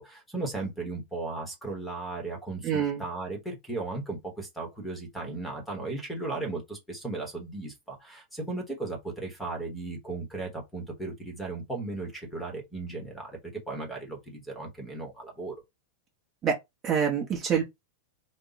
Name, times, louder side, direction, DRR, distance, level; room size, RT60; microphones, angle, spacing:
voice 1, 0.0-15.5, right 3 dB, 5° left, 1.0 m, -36 dB
voice 2, 2.6-3.0 16.4-16.6 16.8-17.6, right 7 dB, 20° right, 0.8 m, -26 dB
4.0 x 2.2 x 3.9 m
supercardioid pair, 175°, 0 cm